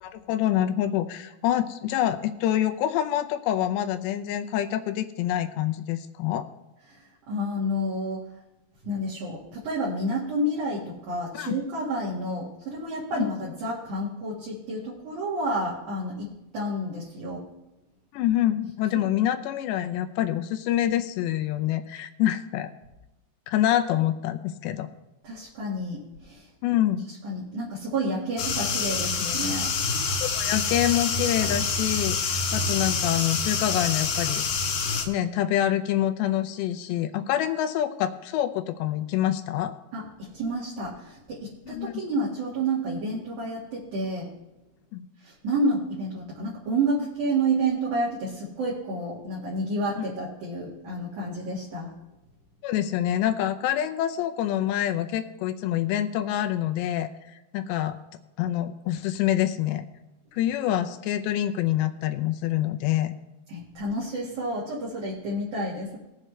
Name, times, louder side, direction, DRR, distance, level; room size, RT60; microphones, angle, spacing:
voice 1, 0.0-6.5 11.3-11.6 13.1-13.3 18.1-22.7 23.5-24.9 26.6-27.1 30.2-34.4 35.1-39.7 41.7-42.0 44.9-45.1 50.0-50.1 52.6-57.1 57.5-58.0 58.4-59.8 60.3-63.1, left 12 dB, 85° left, 7 dB, 2.9 m, -26 dB
voice 2, 6.9-8.3 8.8-17.4 18.9-19.1 25.2-26.5 27.2-29.7 39.9-44.3 45.2-51.9 63.5-66.0, right 1 dB, 55° right, -6 dB, 3.0 m, -30 dB
sound 1, 28.4-35.1, left 4 dB, 65° left, 2.2 m, -27 dB
20.0 x 7.7 x 3.2 m, 0.98 s
omnidirectional pair, 4.9 m